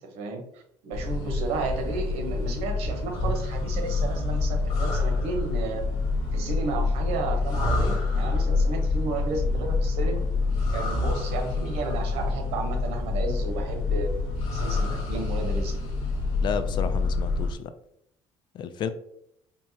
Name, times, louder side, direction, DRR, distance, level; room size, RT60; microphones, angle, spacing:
voice 1, 0.0-5.8 6.3-10.2 10.7-14.1 14.5-15.8, right 3 dB, 80° right, 4 dB, 0.9 m, -33 dB
sound 1, 0.9-17.5, left 3 dB, 70° left, 1.4 m, -27 dB
voice 2, 16.4-17.7 18.6-18.9, left 7 dB, 50° left, 11 dB, 0.4 m, -31 dB
4.4 x 2.8 x 2.8 m, 0.72 s
cardioid pair, 120°, 10 cm